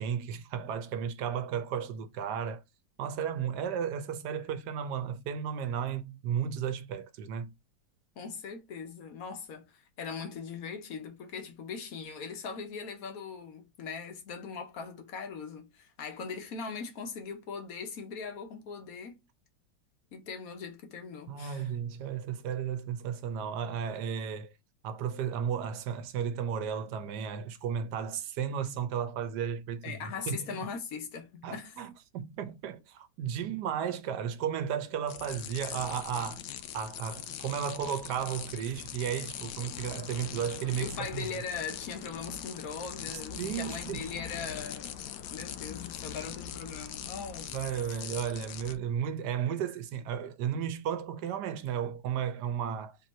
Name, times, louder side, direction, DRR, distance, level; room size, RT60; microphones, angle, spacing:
voice 1, 0.0-2.6 3.0-7.5 21.3-24.5 24.8-29.9 30.3-30.7 31.4-36.4 36.7-41.4 43.1-44.0 47.5-53.0, right 8 dB, 75° right, 1.2 m, -34 dB
voice 2, 8.2-19.2 20.1-21.6 29.8-31.8 40.8-44.9 45.3-47.5, left 5 dB, 60° left, 1.3 m, -40 dB
sound 1, 35.1-48.8, left 9 dB, 80° left, 1.2 m, -41 dB
3.8 x 3.0 x 4.0 m
omnidirectional pair, 1.9 m